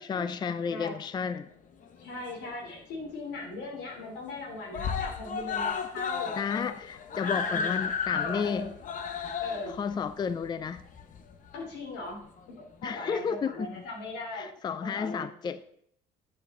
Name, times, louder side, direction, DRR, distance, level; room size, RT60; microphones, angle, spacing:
voice 1, 0.0-1.5 6.4-8.7 9.7-10.8 12.8-13.7 14.3-15.6, left 6 dB, 25° left, 0.4 m, -32 dB
Screaming, 1.8-2.8 3.1-3.2 3.5-3.6 3.9-4.4 4.7-11.5 12.4-12.5, left 6 dB, 50° left, 0.9 m, -34 dB
voice 2, 2.0-6.3 7.2-7.8 8.1-8.7 9.4-9.8 11.5-12.2 12.8-14.5 14.8-15.3, left 2 dB, 90° left, 3.1 m, -39 dB
9.9 x 6.5 x 3.7 m
cardioid pair, 110°, 17 cm